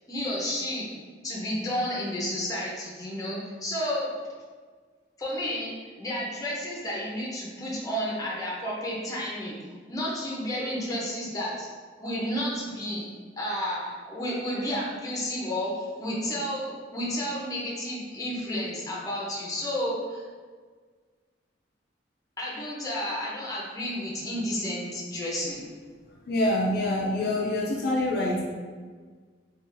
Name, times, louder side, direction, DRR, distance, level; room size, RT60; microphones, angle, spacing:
voice 1, 0.1-0.9 1.2-4.1 5.2-5.7 6.0-9.6 9.9-11.7 12.0-13.1 13.4-15.7 16.0-20.2 22.4-25.7, equal, 20° left, -4 dB, 0.7 m, -31 dB
voice 2, 26.3-28.4, left 1 dB, 55° left, -3 dB, 0.4 m, -25 dB
3.7 x 2.4 x 2.6 m, 1.6 s
head